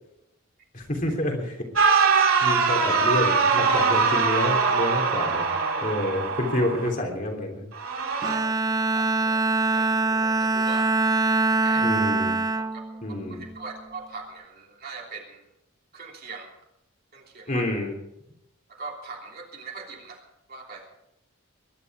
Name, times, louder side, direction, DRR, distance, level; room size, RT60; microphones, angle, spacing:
voice 1, 0.7-1.6 2.4-5.5 5.8-7.6 11.8-12.4 13.0-13.4 17.5-18.0, left 1 dB, 40° left, 1 dB, 3.3 m, -28 dB
sound 1, 1.8-6.9 7.7-8.3, right 5 dB, 80° right, 2.7 m, -22 dB
Bowed string instrument, 8.2-13.7, right 3 dB, 15° right, 0.4 m, -24 dB
voice 2, 8.3-10.9 11.5-11.9 12.5-12.8 13.1-15.4 15.9-16.5 17.1-17.6 18.7-20.9, right 4 dB, 45° right, 0 dB, 3.2 m, -41 dB
22.0 x 11.0 x 4.9 m, 0.83 s
head